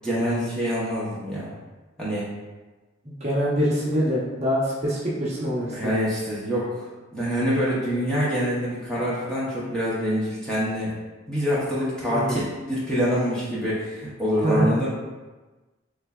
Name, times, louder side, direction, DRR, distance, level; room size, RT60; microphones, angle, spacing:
voice 1, 0.0-1.5 2.0-2.3 5.7-10.9 11.3-14.9, equal, 5° left, -9 dB, 0.7 m, -26 dB
voice 2, 3.0-5.9 12.1-12.3 14.4-14.8, equal, 35° right, -7 dB, 0.8 m, -24 dB
3.7 x 3.2 x 2.3 m, 1.2 s
head